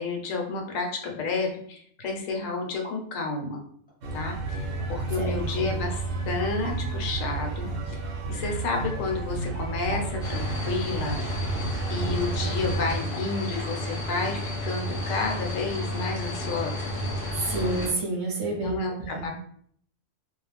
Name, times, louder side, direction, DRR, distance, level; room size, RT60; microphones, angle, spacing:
voice 1, 0.0-3.6 4.1-8.0 8.3-11.5 11.9-16.9 18.5-19.3, left 3 dB, 70° left, 2 dB, 1.0 m, -31 dB
sound 1, 2.8-3.0 3.9-4.0 4.8-5.0 6.6-6.8 8.7-8.9 9.9-10.1 11.0-11.2 12.4-12.5 13.1-13.3 13.6-13.7, equal, 10° left, 0.7 m, -41 dB
sound 2, 4.0-13.0, right 3 dB, 70° right, 0.9 m, -31 dB
voice 2, 5.2-5.7 17.3-19.3, right 2 dB, 30° right, -2 dB, 0.6 m, -30 dB
sound 3, 10.2-17.9, left 1 dB, 45° left, 0.8 m, -32 dB
2.4 x 2.0 x 3.2 m, 0.63 s
omnidirectional pair, 1.5 m